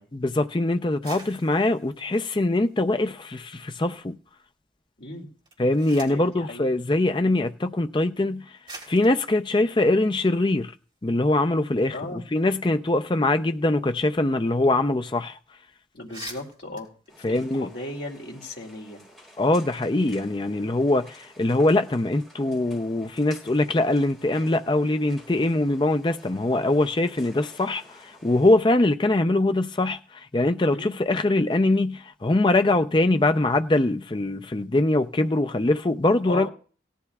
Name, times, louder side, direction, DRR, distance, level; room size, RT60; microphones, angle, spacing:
voice 1, 0.1-4.2 5.6-8.4 8.9-10.7 11.0-15.4 17.2-17.7 19.4-36.5, left 2 dB, 25° left, 0.5 m, -23 dB
sound 1, 0.9-3.4 3.8-4.5 5.3-6.4 7.4-7.5 8.2-8.3 8.6-11.0 11.3-11.4 11.7-14.3 14.6-14.7 15.0-15.2 15.6-15.7 15.9-18.1, right 3 dB, 30° right, 3.3 m, -47 dB
voice 2, 5.0-5.3 6.1-6.6 11.9-12.2 15.9-16.9 17.2-19.0 30.7-30.9 36.2-36.5, left 2 dB, 65° left, 2.4 m, -36 dB
sound 2, 17.1-28.6, equal, 5° left, 7.5 m, -51 dB
17.0 x 13.0 x 2.3 m
head